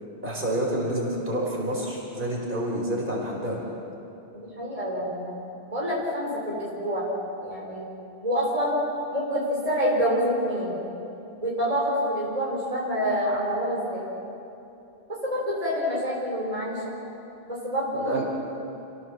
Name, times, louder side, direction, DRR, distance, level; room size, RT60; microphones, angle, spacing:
voice 1, 0.2-3.6 17.9-18.2, right 1 dB, 55° right, -3 dB, 5.0 m, -28 dB
voice 2, 4.4-5.4 5.7-7.1 7.4-7.8 8.2-8.8 9.1-10.8 11.4-14.0 15.2-16.9 17.5-18.2, equal, 35° right, -5 dB, 4.2 m, -27 dB
28.5 x 17.0 x 7.4 m, 2.8 s
omnidirectional pair, 1.1 m